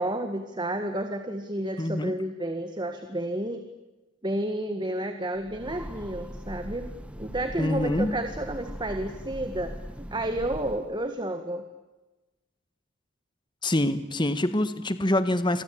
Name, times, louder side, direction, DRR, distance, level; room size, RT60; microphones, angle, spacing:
voice 1, 0.0-3.7 4.2-11.6, right 1 dB, 20° right, 7 dB, 1.8 m, -31 dB
voice 2, 1.8-2.1 7.6-8.1 13.6-15.6, left 1 dB, 20° left, 11 dB, 1.5 m, -25 dB
Train, 5.3-11.1, equal, 5° right, 1.5 m, -40 dB
28.5 x 24.0 x 8.7 m, 1.1 s
head